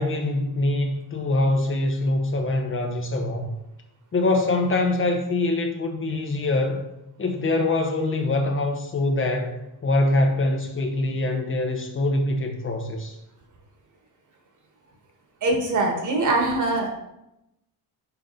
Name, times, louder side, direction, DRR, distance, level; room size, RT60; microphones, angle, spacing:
voice 1, 0.0-3.5 4.1-6.9 7.2-13.1, left 2 dB, 35° left, 4 dB, 0.7 m, -24 dB
voice 2, 15.4-16.9, right 2 dB, 50° right, 1 dB, 1.5 m, -22 dB
5.7 x 5.0 x 4.0 m, 0.87 s
cardioid pair, 150°, 38 cm